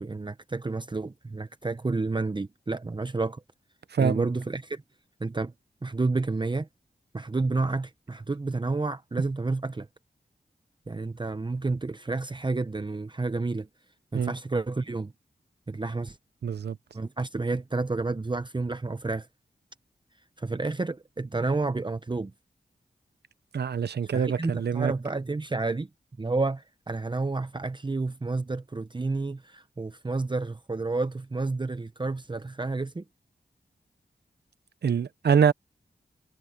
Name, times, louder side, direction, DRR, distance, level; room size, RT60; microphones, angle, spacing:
voice 1, 0.0-3.4 4.0-4.8 5.2-5.5 5.8-6.7 7.1-9.9 10.9-13.7 14.1-15.1 15.7-16.2 16.9-19.3 20.4-22.3 24.0-25.9 26.2-33.0, right 3 dB, 25° right, 0.8 m, -30 dB
voice 2, 3.9-4.3 14.1-14.3 16.4-16.8 23.5-24.9 34.8-35.5, right 7 dB, 75° right, 0.8 m, -25 dB
cardioid pair, 55°, 17 cm